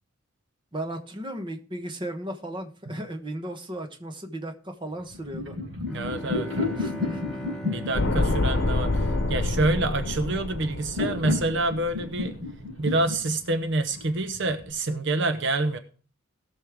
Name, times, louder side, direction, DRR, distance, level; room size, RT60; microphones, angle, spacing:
voice 1, 0.7-5.6 6.8-7.4, right 1 dB, 25° right, 6 dB, 1.2 m, -36 dB
sound 1, 5.0-14.7, left 3 dB, 75° right, 4.6 m, -32 dB
Bowed string instrument, 5.9-11.1, equal, ahead, 2.3 m, -39 dB
voice 2, 5.9-6.5 7.6-12.4 12.8-15.8, right 2 dB, 55° right, 9 dB, 0.8 m, -27 dB
sound 2, 7.9-12.2 12.5-12.6, left 2 dB, 70° left, 0.9 m, -27 dB
17.5 x 6.4 x 3.5 m, 0.40 s
head